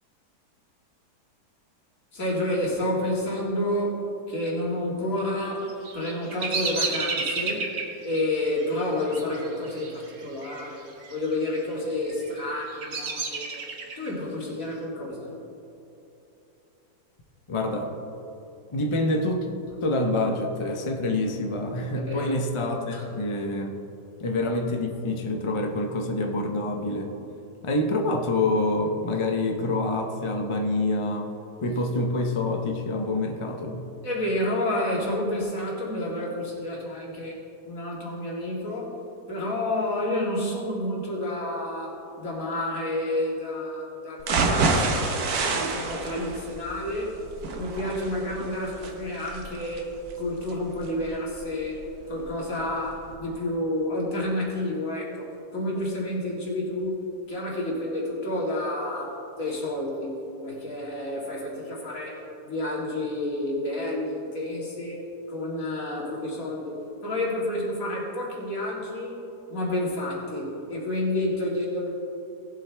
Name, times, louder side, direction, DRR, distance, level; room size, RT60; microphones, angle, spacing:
voice 1, 2.1-5.7 5.9-7.7 8.0-10.8 11.1-13.6 14.0-15.3 21.9-22.4 22.9-23.0 34.0-37.4 37.7-38.9 39.3-45.2 45.5-47.2 47.5-49.9 50.2-51.8 52.1-69.2 69.5-71.9, left 1 dB, 55° left, -4 dB, 2.5 m, -30 dB
Bird vocalization bird call bird song, 5.6-10.7 10.9-11.5 12.1-14.1, right 4 dB, 50° right, 1.5 m, -32 dB
voice 2, 17.5-18.0 18.7-19.5 19.8-23.8 24.2-27.1 27.6-31.3 31.6-33.9, left 2 dB, 35° left, 3 dB, 0.4 m, -26 dB
sound 1, 44.2-52.2 52.6-52.7 53.1-53.2, right 3 dB, 65° right, 1.4 m, -28 dB
18.0 x 7.7 x 3.4 m, 2.9 s
omnidirectional pair, 1.8 m